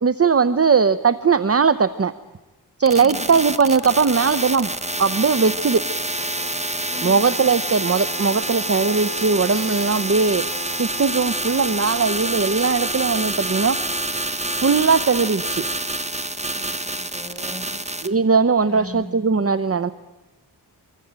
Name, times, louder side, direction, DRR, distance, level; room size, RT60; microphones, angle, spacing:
voice 1, 0.0-2.1 2.8-4.7 5.0-5.8 7.0-10.4 10.8-13.8 14.6-15.6 18.0-19.9, right 5 dB, 35° right, 14 dB, 0.8 m, -19 dB
sound 1, 2.9-18.1, right 2 dB, 15° right, 1.3 m, -27 dB
voice 2, 3.0-3.3 6.9-7.3 16.5-17.7 18.7-19.0, left 1 dB, ahead, 2 dB, 6.7 m, -38 dB
25.0 x 23.0 x 8.8 m, 1.1 s
wide cardioid pair, 50°, 41 cm